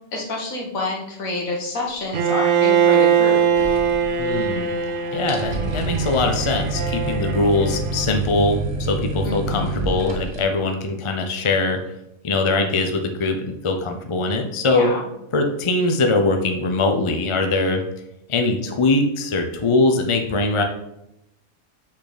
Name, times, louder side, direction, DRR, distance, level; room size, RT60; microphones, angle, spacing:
voice 1, 0.1-3.4 9.2-9.8 14.6-15.0, left 2 dB, 80° left, -1 dB, 2.0 m, -28 dB
Bowed string instrument, 2.1-8.1, right 7 dB, 50° right, 0.7 m, -21 dB
sound 1, 3.6-4.6 4.8-4.9 5.2-10.4, right 2 dB, 70° right, 1.4 m, -28 dB
voice 2, 4.2-4.7 5.1-11.8 12.2-14.9 15.3-17.8 18.3-20.6, left 2 dB, 30° left, 4 dB, 0.6 m, -22 dB
6.2 x 6.1 x 4.2 m, 0.83 s
omnidirectional pair, 1.4 m